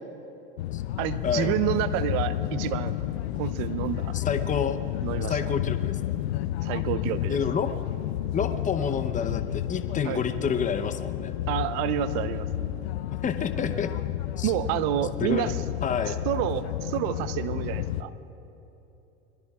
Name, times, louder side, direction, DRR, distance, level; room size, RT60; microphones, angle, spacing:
sound 1, 0.6-18.0, left 13 dB, 85° left, 0.5 m, -31 dB
voice 1, 1.0-3.0 3.3-4.2 5.0-5.4 6.6-7.4 10.0-10.2 11.5-12.5 14.4-15.6 16.1-18.1, right 12 dB, 65° right, 12 dB, 0.9 m, -29 dB
voice 2, 4.1-4.8 5.3-6.2 7.3-7.7 8.3-11.3 13.2-13.9 14.4-14.5 15.2-15.5 15.8-16.2, left 6 dB, 25° left, 8 dB, 0.9 m, -29 dB
26.5 x 21.5 x 2.4 m, 3.0 s
hypercardioid pair, 90°, 32 cm